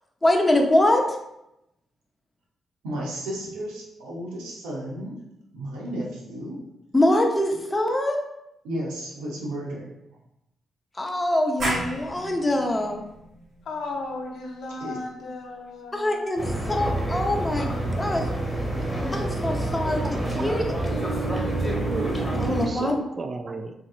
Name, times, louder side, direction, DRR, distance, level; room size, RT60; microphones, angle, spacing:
voice 1, 0.2-1.0 6.9-8.2 11.0-13.0 15.9-18.3 19.1-20.0 20.4-20.6 22.4-23.0, left 1 dB, 20° left, 2 dB, 0.7 m, -23 dB
voice 2, 2.8-5.2 5.5-6.6 8.6-10.2 14.8-15.0, right 1 dB, 80° right, -3 dB, 0.7 m, -33 dB
sound 1, 11.6-17.0, right 1 dB, 55° right, 1.5 m, -36 dB
voice 3, 13.6-16.5 20.6-21.9, left 2 dB, 65° left, 1 dB, 0.6 m, -37 dB
sound 2, 16.4-22.7, right 1 dB, ahead, 1.3 m, -27 dB
voice 4, 20.0-20.5 21.9-23.7, right 3 dB, 40° right, 5 dB, 0.4 m, -33 dB
3.8 x 2.8 x 2.4 m, 0.85 s
hypercardioid pair, 40°, 0 cm